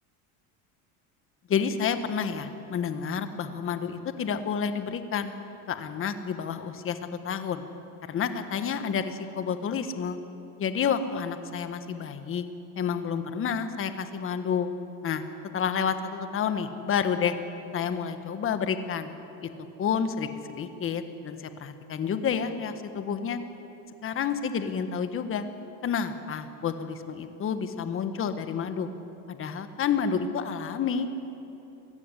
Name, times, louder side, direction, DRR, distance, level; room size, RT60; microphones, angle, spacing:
voice 1, 1.5-5.3 5.7-7.0 7.2-7.6 8.1-10.2 10.6-12.4 12.7-14.7 15.0-15.2 15.5-17.3 17.7-19.1 19.8-23.4 24.0-25.4 25.8-28.9 29.3-31.1, left 7 dB, 30° left, 9 dB, 1.5 m, -29 dB
23.0 x 15.0 x 9.9 m, 3.0 s
cardioid pair, 145°, 41 cm